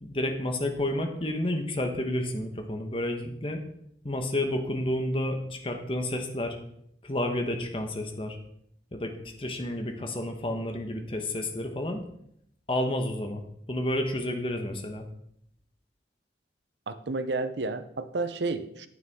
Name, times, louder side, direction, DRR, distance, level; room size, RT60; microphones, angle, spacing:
voice 1, 0.0-3.6 4.0-6.6 7.0-8.4 8.9-12.0 12.7-15.0, left 1 dB, 30° left, 5 dB, 1.1 m, -30 dB
voice 2, 16.9-18.9, right 3 dB, 80° right, 12 dB, 0.7 m, -31 dB
9.5 x 9.2 x 3.6 m, 0.73 s
head